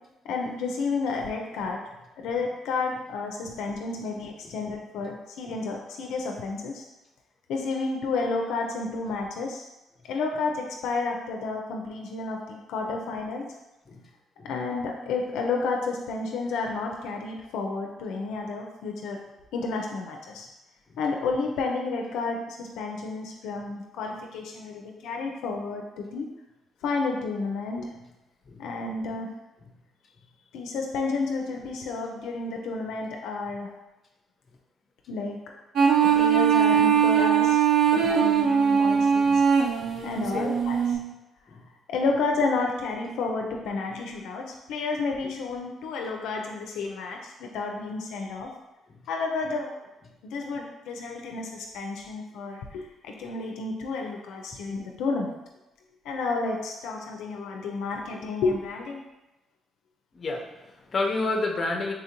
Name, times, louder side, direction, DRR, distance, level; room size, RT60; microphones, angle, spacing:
voice 1, 0.2-1.8 2.2-6.8 7.5-9.7 10.0-13.5 14.4-19.2 19.5-20.5 21.0-26.3 26.8-27.9 28.6-29.3 30.5-33.7 35.1-35.4 36.0-37.6 37.9-39.4 40.0-41.0 41.9-48.5 49.1-49.7 50.2-55.3 56.0-59.0, left 3 dB, 90° left, 1 dB, 0.4 m, -31 dB
sound 1, 35.8-41.0, right 7 dB, 75° right, 0.4 m, -21 dB
voice 2, 39.8-40.6 41.5-41.6 60.1-61.9, left 2 dB, 40° left, 1 dB, 0.6 m, -31 dB
3.8 x 2.5 x 2.8 m, 1.0 s
cardioid pair, 90°, 0 cm